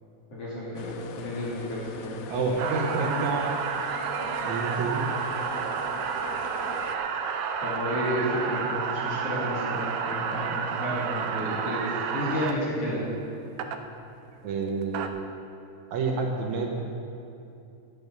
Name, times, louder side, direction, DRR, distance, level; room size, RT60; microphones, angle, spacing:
voice 1, 0.3-2.2 7.6-13.1, equal, 50° left, -7 dB, 3.4 m, -31 dB
sound 1, 0.8-7.0, left 6 dB, 85° left, 2.2 m, -41 dB
voice 2, 2.3-3.6 4.4-5.1 14.4-15.3 15.9-16.8, right 4 dB, 75° right, 1 dB, 2.3 m, -28 dB
sound 2, 2.6-12.5 13.6-13.8 14.7-15.1, right 7 dB, 90° right, 2.2 m, -30 dB
11.0 x 9.1 x 6.7 m, 2.7 s
omnidirectional pair, 3.5 m